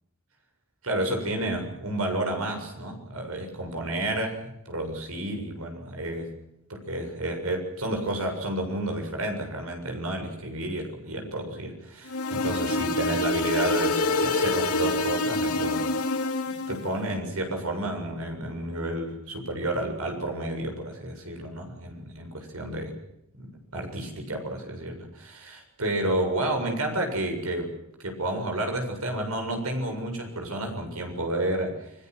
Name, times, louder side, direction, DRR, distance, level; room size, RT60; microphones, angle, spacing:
voice 1, 0.8-6.4 6.7-15.8 16.5-23.0 23.3-31.9, right 1 dB, 75° right, 4 dB, 7.3 m, -31 dB
sound 1, 12.1-16.9, left 2 dB, 85° left, 2.8 m, -26 dB
30.0 x 22.0 x 6.3 m, 0.77 s
head